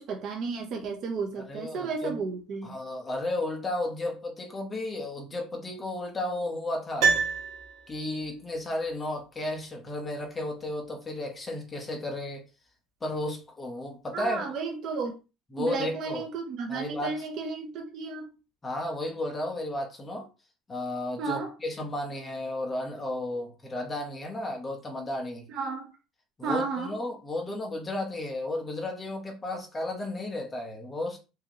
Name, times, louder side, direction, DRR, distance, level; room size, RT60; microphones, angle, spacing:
voice 1, 0.0-2.8 14.1-15.1 15.6-18.3 21.2-21.5 25.5-25.9 26.4-26.9, right 4 dB, 45° right, 0.8 m, -33 dB
voice 2, 1.4-2.2 2.6-7.2 7.9-12.4 13.0-14.5 15.5-16.2 16.7-17.2 18.6-20.3 20.7-25.5 26.4-31.2, left 1 dB, 15° left, 1.0 m, -33 dB
Piano, 7.0-8.3 8.5-8.6, right 5 dB, 80° right, 1.6 m, -27 dB
4.7 x 2.9 x 2.9 m
cardioid pair, 170°, 0 cm